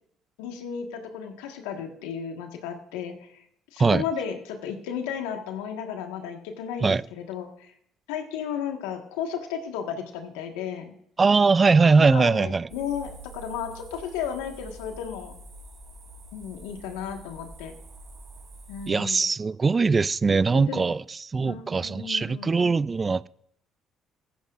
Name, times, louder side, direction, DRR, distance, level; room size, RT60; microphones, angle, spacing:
voice 1, 0.4-3.4 3.7-7.7 8.1-10.9 12.0-15.3 16.3-17.7 18.7-19.2 20.5-20.8 21.4-22.5, left 8 dB, 85° left, 1.6 m, -34 dB
voice 2, 11.2-12.7 18.9-21.0 21.3-23.3, right 4 dB, 30° right, 0.4 m, -21 dB
sound 1, 12.7-18.9, right 2 dB, 50° right, 3.1 m, -46 dB
17.0 x 14.5 x 2.5 m
supercardioid pair, 65°, 0 cm